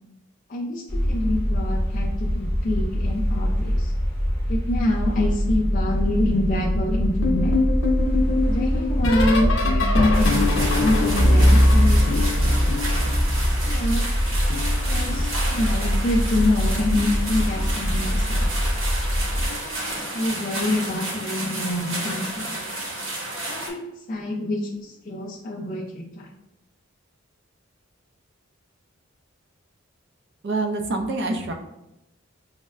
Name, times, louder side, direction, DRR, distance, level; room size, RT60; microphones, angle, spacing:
voice 1, 0.5-3.9 4.5-7.6 8.5-12.7 13.7-14.1 14.9-18.5 19.3-22.7 23.4-26.3, left 1 dB, 40° left, -1 dB, 0.3 m, -26 dB
sound 1, 0.9-19.5, equal, 10° left, 0.8 m, -24 dB
sound 2, 7.2-14.0 14.3-15.9 16.8-17.2 17.5-17.8 19.3-19.6 20.0-20.2 21.8-21.9, left 1 dB, 65° left, 0.8 m, -22 dB
sound 3, 10.1-23.7, right 2 dB, 80° right, 0.9 m, -31 dB
voice 2, 30.4-31.5, right 2 dB, 55° right, 4 dB, 0.4 m, -26 dB
6.2 x 2.1 x 2.3 m, 0.89 s
head